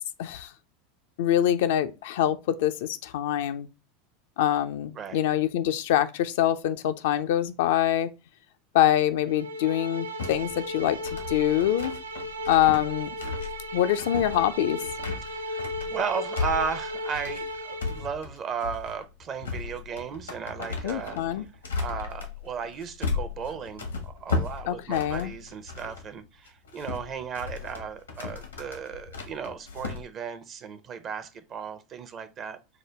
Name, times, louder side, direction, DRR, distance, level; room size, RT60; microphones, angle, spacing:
voice 1, 0.2-0.5 1.2-3.7 4.4-8.1 8.7-11.0 11.3-11.9 12.5-13.2 13.7-14.8 20.8-21.5 24.7-25.3, left 11 dB, 65° left, 0.4 m, -25 dB
sound 1, 9.3-18.1, equal, 85° right, 0.4 m, -35 dB
sound 2, 10.2-26.1 26.5-30.0, left 4 dB, 85° left, 0.8 m, -35 dB
voice 2, 15.2-21.2 21.5-32.6, right 6 dB, 40° right, 0.6 m, -35 dB
4.9 x 2.2 x 3.2 m
figure-of-eight pair, 85°, 0 cm